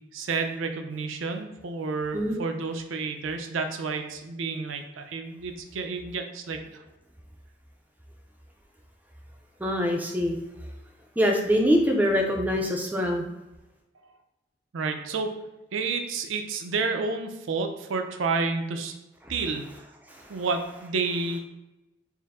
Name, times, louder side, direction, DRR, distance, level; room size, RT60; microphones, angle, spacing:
voice 1, 0.1-6.8 14.7-15.3 15.7-18.9 19.3-19.7 20.3-21.4, right 4 dB, 80° right, 6 dB, 0.5 m, -30 dB
voice 2, 9.6-10.4 11.2-13.3 19.2-19.3 20.1-20.4, equal, 10° right, 1 dB, 0.4 m, -24 dB
4.4 x 2.0 x 3.5 m, 1.0 s
head